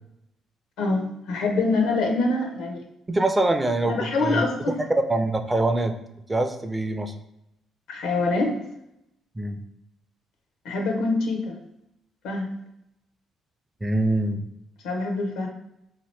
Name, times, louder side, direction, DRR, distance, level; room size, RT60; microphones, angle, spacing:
voice 1, 0.8-2.8 3.8-4.8 7.9-8.6 10.6-11.6 12.2-12.5 14.8-15.5, left 3 dB, 85° left, 3 dB, 0.6 m, -25 dB
voice 2, 3.1-4.4 5.1-5.9 6.3-7.1 9.4-9.6 13.8-14.4, right 2 dB, 20° right, 6 dB, 0.4 m, -24 dB
2.8 x 2.6 x 3.1 m, 0.82 s
supercardioid pair, 75°, 0 cm